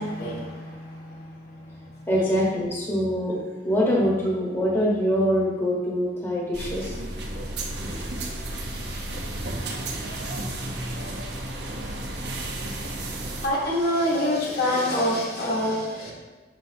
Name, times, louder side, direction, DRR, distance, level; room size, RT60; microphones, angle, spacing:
voice 1, 0.0-2.1 8.5-8.9 9.8-9.9 11.0-11.1 13.4-16.1, left 1 dB, 50° left, -4 dB, 1.4 m, -27 dB
voice 2, 2.1-3.4 3.6-7.0, equal, 15° left, -6 dB, 1.2 m, -24 dB
sound 1, 6.5-13.5, right 1 dB, 60° right, 0.9 m, -32 dB
7.0 x 5.7 x 2.7 m, 1.3 s
head